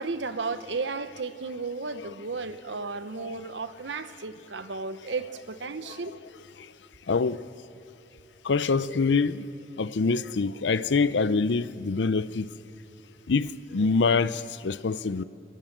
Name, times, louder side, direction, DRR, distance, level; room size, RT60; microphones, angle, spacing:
voice 1, 0.0-6.1 10.0-10.4, right 4 dB, 85° right, 0.9 m, -34 dB
voice 2, 7.1-7.4 8.4-9.5 9.8-12.5 13.3-15.2, left 4 dB, 80° left, 0.6 m, -25 dB
22.5 x 19.0 x 7.4 m
head